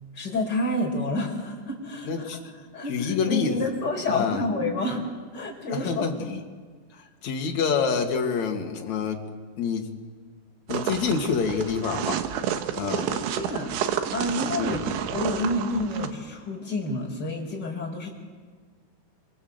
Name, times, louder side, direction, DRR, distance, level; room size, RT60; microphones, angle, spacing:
voice 1, 0.1-2.3 2.7-5.0 5.3-6.0 12.8-13.8 14.1-14.8 15.1-18.1, left 1 dB, 20° left, -1 dB, 5.0 m, -29 dB
voice 2, 2.0-2.4 2.9-3.6 4.1-4.4 5.7-6.4 7.2-9.2 9.6-9.9 10.7-12.2 12.7-13.1 14.6-14.8, left 6 dB, 45° left, 2 dB, 2.9 m, -27 dB
sound 1, 10.7-16.1, right 9 dB, 80° right, 3.6 m, -30 dB
29.0 x 25.0 x 8.0 m, 1.5 s
omnidirectional pair, 5.4 m